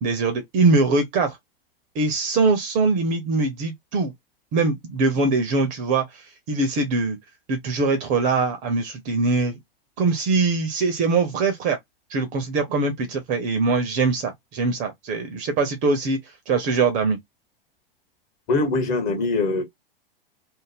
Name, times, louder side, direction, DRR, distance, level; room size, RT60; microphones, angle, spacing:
voice 1, 0.0-1.4 1.9-4.1 4.5-7.2 7.5-9.6 10.0-11.8 12.1-16.2 16.5-17.2, right 3 dB, 25° right, 0.6 m, -22 dB
voice 2, 18.5-19.6, left 3 dB, 30° left, 1.3 m, -22 dB
2.5 x 2.1 x 3.4 m
figure-of-eight pair, 100°, 29 cm